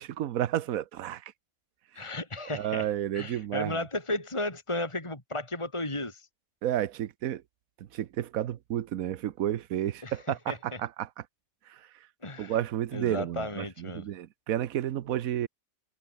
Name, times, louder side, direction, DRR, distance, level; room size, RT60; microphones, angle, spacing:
voice 1, 0.0-1.3 2.5-3.8 6.6-7.4 7.8-11.1 11.7-11.9 12.4-15.5, right 11 dB, 85° right, 1.2 m, -31 dB
voice 2, 1.9-2.9 3.1-6.3 10.0-10.2 10.5-10.8 12.2-12.6 12.9-14.1, left 2 dB, 20° left, 3.3 m, -34 dB
omnidirectional pair, 1.4 m